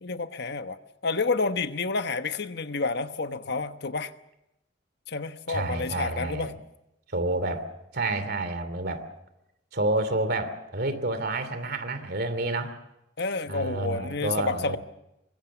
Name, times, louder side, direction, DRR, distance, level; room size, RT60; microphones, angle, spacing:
voice 1, 0.0-4.1 5.1-6.6 13.2-14.8, left 4 dB, 60° left, 9 dB, 1.2 m, -29 dB
voice 2, 5.5-6.5 7.1-7.7 7.9-9.0 9.7-12.7 13.5-14.8, right 2 dB, 55° right, 11 dB, 2.8 m, -29 dB
24.0 x 22.5 x 7.1 m, 0.88 s
head